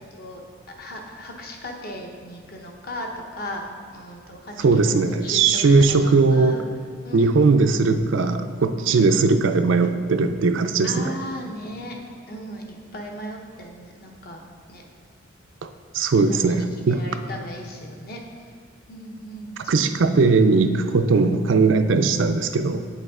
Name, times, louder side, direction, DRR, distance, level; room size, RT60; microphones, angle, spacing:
voice 1, 0.1-0.4 0.8-3.6 3.9-4.9 5.2-6.6 7.0-7.5 8.8-9.1 10.8-12.0 12.3-14.4 14.7-14.8 16.0-18.5 18.9-19.8 20.8-20.9, equal, 50° left, 1 dB, 0.9 m, -37 dB
voice 2, 4.6-6.5 7.1-11.1 15.9-17.0 19.7-22.8, right 4 dB, 80° right, 8 dB, 0.4 m, -19 dB
8.2 x 5.4 x 3.6 m, 2.1 s
head